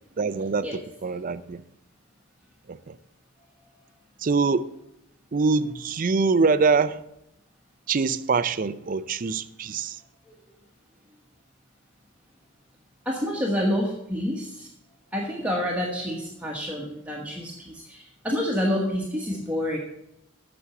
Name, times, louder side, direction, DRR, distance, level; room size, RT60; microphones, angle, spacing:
voice 1, 0.2-1.6 2.7-3.0 4.2-4.7 5.3-7.0 7.9-10.0, right 4 dB, 40° right, 0.4 m, -24 dB
voice 2, 13.0-14.7 15.1-19.8, equal, 5° right, 1.1 m, -28 dB
8.5 x 6.2 x 6.8 m
head